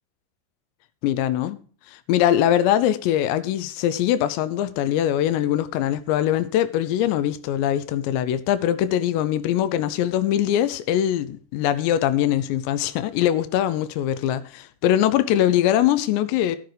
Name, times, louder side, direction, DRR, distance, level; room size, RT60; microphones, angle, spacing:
voice 1, 1.0-1.6 1.9-16.6, left 11 dB, 80° left, 2.6 m, -22 dB
14.5 x 6.8 x 4.9 m
omnidirectional pair, 5.5 m